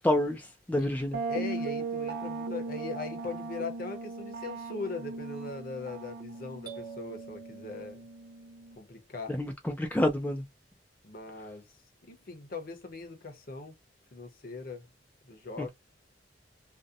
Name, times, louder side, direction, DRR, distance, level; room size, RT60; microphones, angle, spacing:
voice 1, 0.0-1.2 9.3-10.4 15.6-15.7, left 1 dB, 10° left, 0.4 m, -28 dB
sound 1, 1.1-8.8, right 3 dB, 60° right, 0.4 m, -38 dB
voice 2, 1.3-8.0 8.8-9.4 11.0-11.8 12.1-13.7 14.1-14.9 15.2-15.7, left 4 dB, 55° left, 0.8 m, -40 dB
sound 2, 6.7-8.6, right 7 dB, 25° right, 0.7 m, -48 dB
2.7 x 2.1 x 2.4 m
head